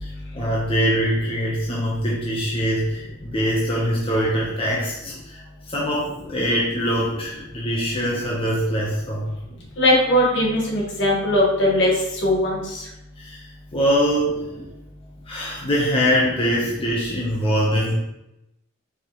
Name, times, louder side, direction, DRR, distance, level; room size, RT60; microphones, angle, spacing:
voice 1, 0.0-9.3 13.2-13.5 13.7-14.5 15.3-17.9, equal, 30° left, -5 dB, 0.8 m, -23 dB
voice 2, 9.8-11.9 12.2-12.6, left 1 dB, 65° left, -3 dB, 1.3 m, -19 dB
4.7 x 3.5 x 3.0 m, 0.88 s
head